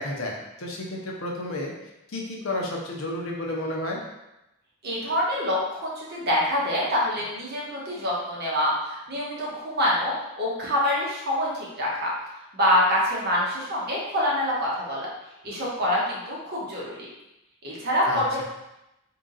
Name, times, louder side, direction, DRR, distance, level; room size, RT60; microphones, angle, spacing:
voice 1, 0.0-1.7 2.1-4.0 18.1-18.4, left 1 dB, 70° left, -1 dB, 0.8 m, -31 dB
voice 2, 4.8-12.1 12.5-15.1 15.4-17.0 17.6-18.4, left 1 dB, 50° right, -5 dB, 1.2 m, -26 dB
3.7 x 2.8 x 3.8 m, 0.92 s
head